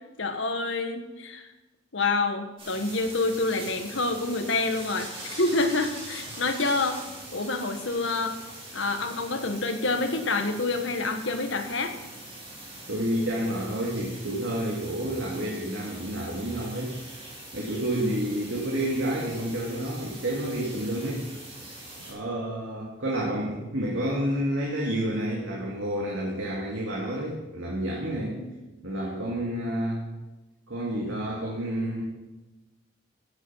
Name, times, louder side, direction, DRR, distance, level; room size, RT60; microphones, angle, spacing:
voice 1, 0.2-1.5 1.9-7.0 7.3-8.4 8.7-11.9 17.9-18.1 28.4-28.5, left 3 dB, 65° left, 6 dB, 1.5 m, -27 dB
sound 1, 2.6-22.1, right 1 dB, 25° right, 4.8 m, -43 dB
voice 2, 12.9-17.0 17.5-21.3 22.0-28.4 28.8-30.0 30.7-32.0, right 1 dB, 70° right, -3 dB, 2.2 m, -29 dB
16.0 x 8.1 x 5.7 m, 1.1 s
head